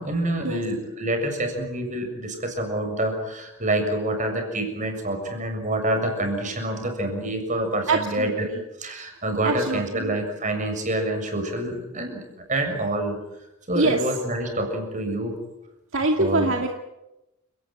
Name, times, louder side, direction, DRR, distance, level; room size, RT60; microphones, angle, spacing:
voice 1, 0.0-8.5 8.8-12.2 12.5-13.2 13.7-15.4 16.2-16.5, right 1 dB, 35° right, 5 dB, 7.0 m, -27 dB
voice 2, 7.9-8.6 9.4-10.1 13.8-14.0 15.9-16.7, right 2 dB, 60° right, 3 dB, 2.4 m, -24 dB
30.0 x 18.5 x 9.5 m, 0.95 s
head